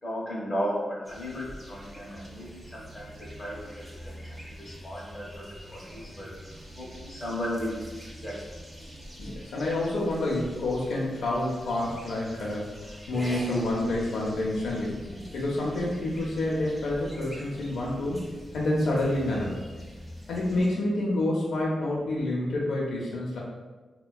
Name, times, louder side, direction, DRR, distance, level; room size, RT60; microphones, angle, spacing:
voice 1, 0.0-3.1 3.4-3.7 4.0-4.2 4.5-6.3 6.8-7.8 8.2-8.5, equal, 25° left, -7 dB, 0.7 m, -35 dB
sound 1, 1.0-20.7, equal, 5° right, 0.4 m, -43 dB
voice 2, 9.2-15.0 15.3-18.2 18.5-19.6 20.3-23.4, left 1 dB, 80° left, -4 dB, 0.5 m, -28 dB
4.3 x 2.2 x 2.2 m, 1.3 s
wide cardioid pair, 175°, 0 cm